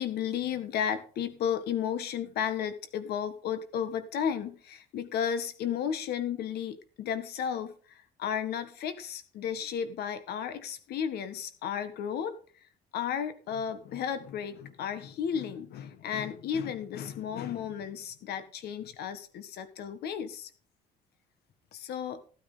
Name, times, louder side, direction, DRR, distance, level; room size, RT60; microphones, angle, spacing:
voice 1, 0.0-12.7 12.9-20.5 21.7-22.2, left 8 dB, 70° left, 11 dB, 1.6 m, -33 dB
15.0 x 9.5 x 3.9 m, 0.40 s
cardioid pair, 110°, 17 cm